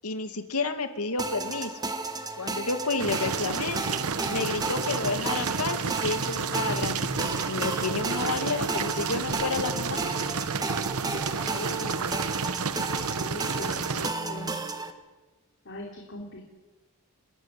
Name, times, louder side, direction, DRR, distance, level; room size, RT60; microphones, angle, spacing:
voice 1, 0.0-1.7 2.4-3.8 4.3-10.0, left 3 dB, 90° left, 8 dB, 2.3 m, -30 dB
sound 1, 1.2-14.9, right 3 dB, 20° right, 1.7 m, -33 dB
sound 2, 3.0-14.1, right 5 dB, 75° right, 1.0 m, -31 dB
voice 2, 11.5-12.4 13.2-14.6 15.6-16.4, left 1 dB, 55° left, 0 dB, 3.4 m, -40 dB
30.0 x 13.5 x 9.9 m, 1.2 s
head